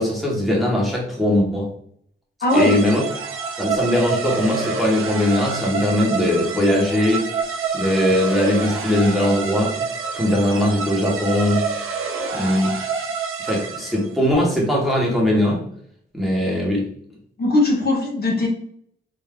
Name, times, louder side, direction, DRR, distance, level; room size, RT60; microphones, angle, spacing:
voice 1, 0.0-1.7 2.5-3.0 3.6-7.3 7.7-9.8 10.2-11.7 12.3-12.7 13.4-15.6 16.1-16.9, left 1 dB, ahead, -4 dB, 1.1 m, -20 dB
voice 2, 2.4-2.8 17.4-18.5, left 1 dB, 50° left, -1 dB, 0.9 m, -19 dB
sound 1, 2.5-14.2, right 5 dB, 85° right, 0.6 m, -27 dB
3.4 x 2.6 x 3.6 m, 0.66 s
wide cardioid pair, 140°, 21 cm